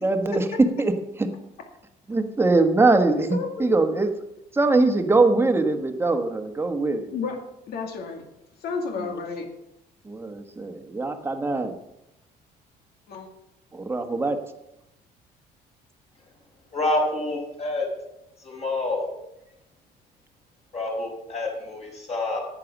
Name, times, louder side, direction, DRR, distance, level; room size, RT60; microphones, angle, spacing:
voice 1, 0.0-0.4 0.8-0.9 1.2-1.3 2.1-4.1 4.5-7.1 9.0-9.1 10.0-11.7 13.7-14.4, right 3 dB, 15° right, 6 dB, 1.3 m, -22 dB
voice 2, 3.3-3.7 7.1-7.4 7.7-8.3 8.6-9.5 13.1-13.3, left 5 dB, 70° left, 3 dB, 2.2 m, -31 dB
voice 3, 16.7-17.9 18.4-19.1 20.7-22.4, left 2 dB, 40° left, 0 dB, 4.9 m, -27 dB
10.5 x 8.7 x 6.1 m, 0.87 s
cardioid pair, 110°, 17 cm